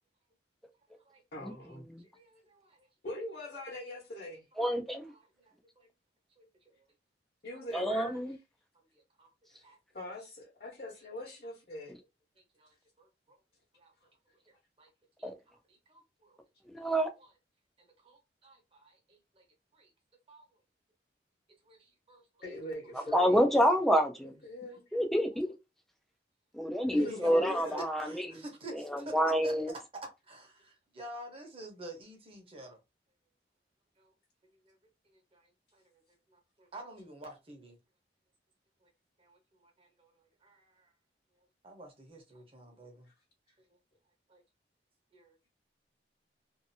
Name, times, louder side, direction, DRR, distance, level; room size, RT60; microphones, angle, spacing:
voice 1, 1.3-1.9 3.0-4.5 7.4-8.4 9.5-9.6 9.9-12.0 22.4-23.5 24.4-25.0 26.9-27.9, left 1 dB, 60° left, 1.1 m, -42 dB
voice 2, 2.0-2.9 5.0-5.9 6.4-6.8 7.5-7.6 8.9-9.3 9.6-9.8 12.6-13.4 13.8-13.9 14.8-14.9 15.2-16.4 16.7-16.9 17.2-17.3 17.8-19.4 19.7-19.9 20.3-20.5 21.6-22.2 26.9-29.2 29.4-29.8 30.3-32.8 34.0-34.1 34.7-34.8 35.3-35.9 36.3-37.8 38.8-38.9 39.2-40.1 40.4-40.9 41.6-43.1 44.3-44.4 45.1-45.4, right 1 dB, 35° right, 0.9 m, -50 dB
voice 3, 4.6-5.1 7.7-8.4 15.2-15.3 16.7-17.1 23.1-24.3 24.9-25.5 26.5-28.4 28.7-29.7, equal, ahead, 0.4 m, -28 dB
2.7 x 2.4 x 2.7 m
head